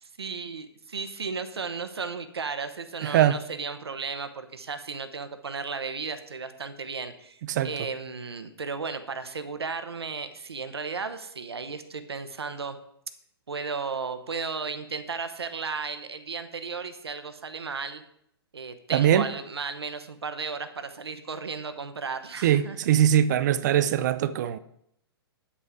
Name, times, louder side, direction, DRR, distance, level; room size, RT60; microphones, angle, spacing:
voice 1, 0.0-12.8 13.5-18.0 18.5-22.8, right 5 dB, 75° right, 0.9 m, -34 dB
voice 2, 3.0-3.4 7.5-7.7 18.9-19.3 22.4-24.6, right 10 dB, 45° right, 0.6 m, -22 dB
9.3 x 8.5 x 3.7 m
figure-of-eight pair, 115°, 14 cm